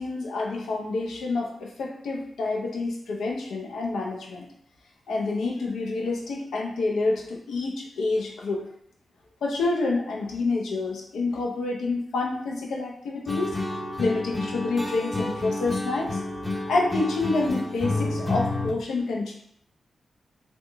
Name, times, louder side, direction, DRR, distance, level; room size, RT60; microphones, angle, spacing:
voice 1, 0.0-4.5 5.1-8.7 9.4-13.5 14.0-16.2 16.7-19.3, left 3 dB, 85° left, -1 dB, 0.5 m, -28 dB
sound 1, 13.3-18.7, left 2 dB, 10° left, 0.7 m, -30 dB
2.9 x 2.1 x 3.2 m, 0.69 s
supercardioid pair, 45°, 0 cm